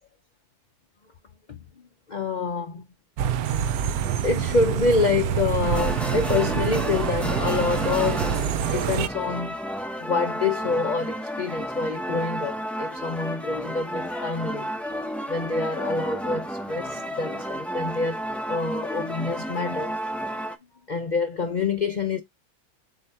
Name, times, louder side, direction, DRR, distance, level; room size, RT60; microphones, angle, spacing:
voice 1, 2.1-2.8 3.5-8.4 8.7-9.6 10.0-14.7 15.3-18.2 18.5-20.0 20.9-22.2, left 4 dB, 65° left, 0.4 m, -27 dB
sound 1, 3.2-9.1, right 9 dB, 75° right, 1.0 m, -26 dB
sound 2, 5.6-20.5, equal, ahead, 0.4 m, -31 dB
7.8 x 2.8 x 4.2 m
omnidirectional pair, 1.6 m